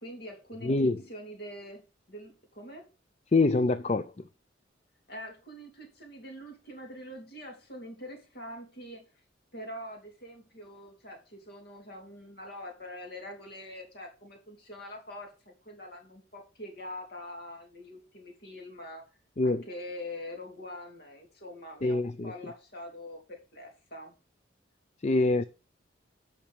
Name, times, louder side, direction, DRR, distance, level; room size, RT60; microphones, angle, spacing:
voice 1, 0.0-1.8 2.1-2.9 5.1-9.1 9.5-15.3 15.7-19.1 19.4-24.1, left 1 dB, 55° left, 3.4 m, -44 dB
voice 2, 0.6-1.0 3.3-4.2 19.4-19.6 21.8-22.3 25.0-25.4, left 3 dB, 35° left, 0.5 m, -25 dB
8.8 x 5.9 x 6.5 m
head